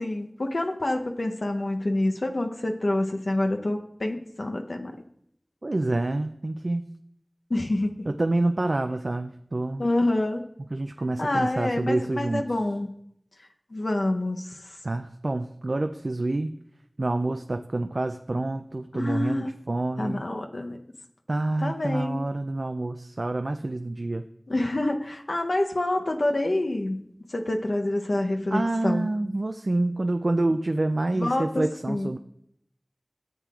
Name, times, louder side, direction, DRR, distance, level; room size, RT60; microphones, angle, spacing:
voice 1, 0.0-5.0 7.5-8.0 9.8-10.4 11.2-12.9 13.7-14.8 18.9-19.5 20.0-20.8 21.6-22.2 24.5-29.1 31.1-32.1, left 1 dB, 75° left, 3 dB, 0.7 m, -27 dB
voice 2, 5.6-6.9 8.1-9.9 10.7-12.4 14.8-16.5 17.0-20.3 21.3-24.3 28.5-32.2, right 2 dB, 65° right, 7 dB, 0.3 m, -27 dB
13.0 x 7.5 x 2.4 m, 0.72 s
wide cardioid pair, 50°, 0 cm